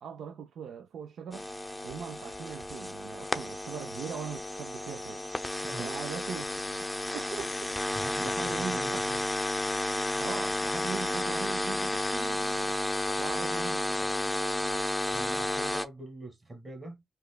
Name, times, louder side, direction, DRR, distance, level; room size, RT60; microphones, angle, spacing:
voice 1, 0.0-1.5 1.8-5.3 5.8-6.9 7.1-7.5 8.2-9.0 10.2-12.8 13.2-14.1, right 7 dB, 75° right, 0.4 m, -41 dB
sound 1, 1.3-15.8, left 1 dB, 10° left, 0.6 m, -32 dB
voice 2, 5.6-5.9 7.9-9.2 15.1-17.0, right 2 dB, 30° right, 1.7 m, -43 dB
5.1 x 2.3 x 2.2 m
cardioid pair, 75°, 0 cm